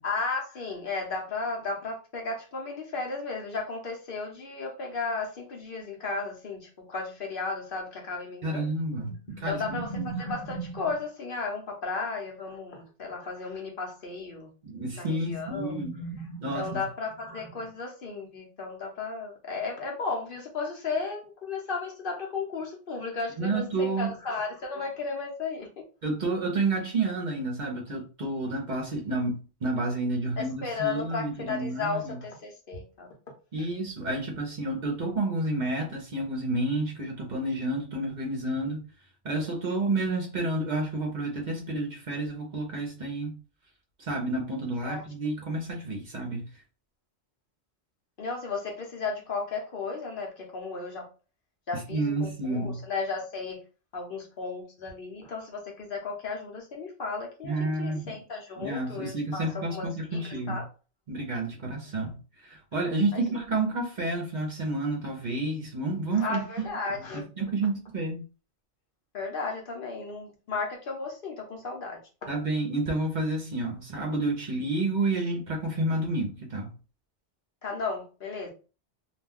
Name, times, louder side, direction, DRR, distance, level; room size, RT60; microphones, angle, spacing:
voice 1, 0.0-8.7 9.3-14.5 14.9-25.7 30.4-33.1 44.8-45.0 48.2-51.1 51.7-53.6 53.9-60.7 63.1-63.2 66.2-67.2 69.1-72.0 77.6-78.5, left 4 dB, 60° left, 0.9 m, -34 dB
voice 2, 8.4-10.1 14.6-15.9 16.4-16.8 23.4-24.1 26.0-32.2 33.5-38.8 39.2-43.3 44.0-46.5 51.9-52.8 57.4-58.2 58.6-60.6 61.1-66.4 67.0-68.2 72.3-76.7, right 2 dB, 50° right, 0.7 m, -30 dB
2.4 x 2.2 x 3.5 m
omnidirectional pair, 1.1 m